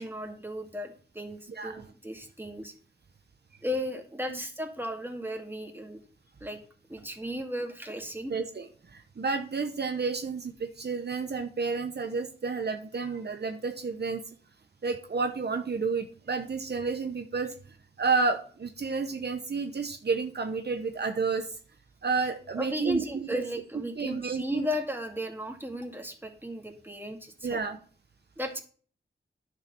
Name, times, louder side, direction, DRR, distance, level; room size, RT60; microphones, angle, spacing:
voice 1, 0.0-2.7 3.6-6.0 6.4-6.6 6.9-8.3 22.6-27.6 28.4-28.6, equal, 10° right, 3 dB, 2.2 m, -35 dB
voice 2, 1.5-1.8 4.3-4.4 8.3-14.2 14.8-17.5 18.0-21.6 22.0-23.4 24.0-24.7 27.4-27.8, right 4 dB, 60° right, 6 dB, 1.0 m, -31 dB
10.5 x 6.6 x 5.9 m, 0.43 s
wide cardioid pair, 65°, 19 cm